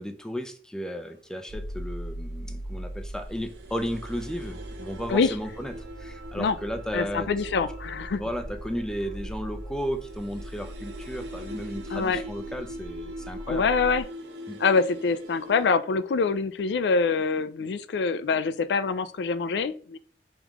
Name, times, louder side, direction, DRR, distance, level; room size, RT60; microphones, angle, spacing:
voice 1, 0.0-5.7 6.0-7.3 8.2-13.7 14.5-14.6, equal, 5° left, 6 dB, 0.4 m, -34 dB
sound 1, 1.0-1.7 2.2-2.3 2.7-15.7, right 1 dB, 80° right, 0.8 m, -43 dB
sound 2, 1.5-14.0, equal, 45° right, 0.6 m, -40 dB
voice 2, 6.9-8.2 11.9-12.2 13.5-14.0 14.6-20.0, left 4 dB, 70° left, 13 dB, 0.4 m, -25 dB
3.6 x 3.1 x 3.5 m, 0.43 s
head